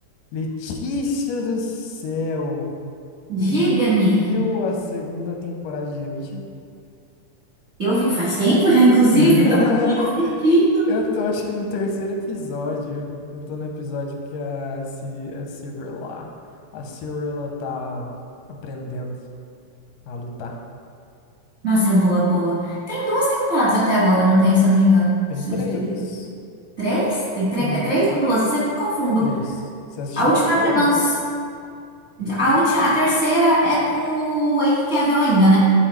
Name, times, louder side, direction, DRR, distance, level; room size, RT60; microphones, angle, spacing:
voice 1, 0.3-2.7 3.4-6.4 9.1-10.3 10.9-13.1 13.3-16.3 16.7-18.1 18.6-19.2 20.1-20.6 25.3-26.3 27.6-28.1 29.2-29.4 30.0-30.9, left 3 dB, 90° left, 1 dB, 2.3 m, -28 dB
voice 2, 3.3-4.3 7.8-9.6 10.0-10.9 21.6-25.8 26.8-29.3 30.2-31.0 32.2-35.6, right 1 dB, 45° right, -9 dB, 0.9 m, -18 dB
11.0 x 4.2 x 3.1 m, 2.3 s
omnidirectional pair, 3.6 m